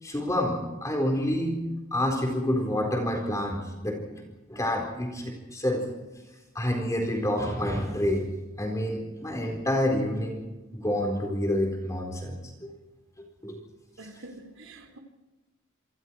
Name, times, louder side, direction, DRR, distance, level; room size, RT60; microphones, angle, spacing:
voice 1, 0.0-1.6 1.9-4.2 4.5-5.8 6.5-8.3 8.6-10.5 10.7-12.7 13.2-13.6, left 1 dB, 15° left, 4.2 m, -28 dB
voice 2, 14.0-15.0, right 2 dB, 75° right, 3.2 m, -46 dB
27.5 x 26.0 x 4.7 m
head